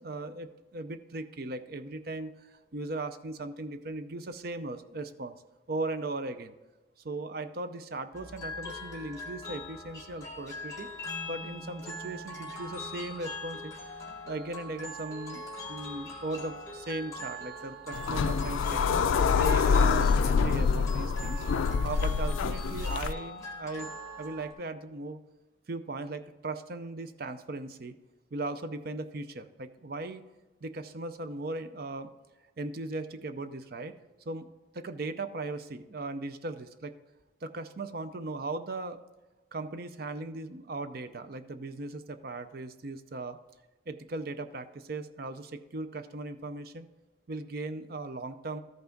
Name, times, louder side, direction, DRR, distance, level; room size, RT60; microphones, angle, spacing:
voice 1, 0.0-5.4 5.7-6.5 7.0-10.9 11.3-15.4 15.7-25.2 25.7-28.0 28.3-30.2 30.6-32.1 32.6-33.9 34.3-34.5 34.7-36.9 37.4-39.0 39.5-43.4 43.9-46.9 47.3-48.6, right 2 dB, 50° right, 10 dB, 0.5 m, -38 dB
sound 1, 8.1-24.5, left 1 dB, 15° left, 1.6 m, -42 dB
sound 2, 17.9-23.1, left 5 dB, 80° left, 0.4 m, -26 dB
13.0 x 5.7 x 3.8 m, 1.2 s
head